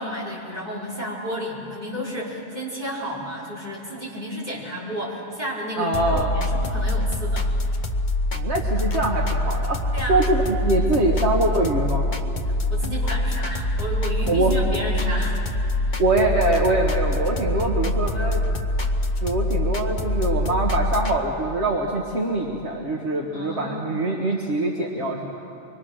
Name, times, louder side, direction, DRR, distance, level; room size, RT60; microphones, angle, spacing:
voice 1, 0.0-7.5 9.9-10.2 10.9-11.1 12.5-15.4 15.8-16.0 23.3-23.9, equal, 40° right, -6 dB, 4.6 m, -32 dB
voice 2, 5.8-6.5 8.3-9.8 10.1-12.1 14.3-14.6 16.0-18.4 19.2-25.3, right 2 dB, 75° right, -1 dB, 1.7 m, -23 dB
sound 1, 5.9-21.2, left 1 dB, 45° left, 1.0 m, -24 dB
24.5 x 21.5 x 6.3 m, 2.8 s
omnidirectional pair, 1.2 m